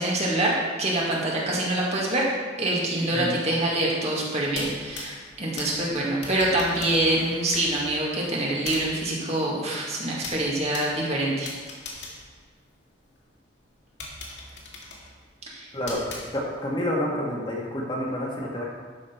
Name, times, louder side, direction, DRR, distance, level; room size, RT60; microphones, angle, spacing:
voice 1, 0.0-2.3 2.6-11.5 15.5-15.7, right 1 dB, 35° right, -4 dB, 2.0 m, -25 dB
sound 1, 4.4-13.2 13.6-13.7 14.0-16.8, left 3 dB, 70° left, 2.1 m, -41 dB
voice 2, 16.3-18.6, equal, 25° left, -4 dB, 1.7 m, -29 dB
12.0 x 6.3 x 4.5 m, 1.5 s
head